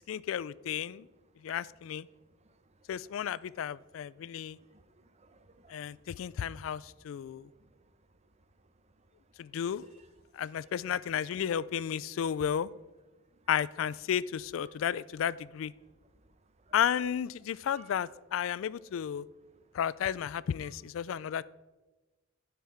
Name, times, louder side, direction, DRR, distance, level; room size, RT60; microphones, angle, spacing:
voice 1, 0.1-1.1 1.4-2.1 2.9-4.6 5.7-7.5 9.4-9.9 10.3-12.7 13.5-15.7 16.7-19.2 19.7-21.4, left 9 dB, 80° left, 21 dB, 0.3 m, -33 dB
voice 2, 4.6-6.5 7.6-7.8 16.7-16.8 17.7-17.9, right 3 dB, 35° right, 10 dB, 0.8 m, -61 dB
10.5 x 6.7 x 4.9 m, 1.2 s
head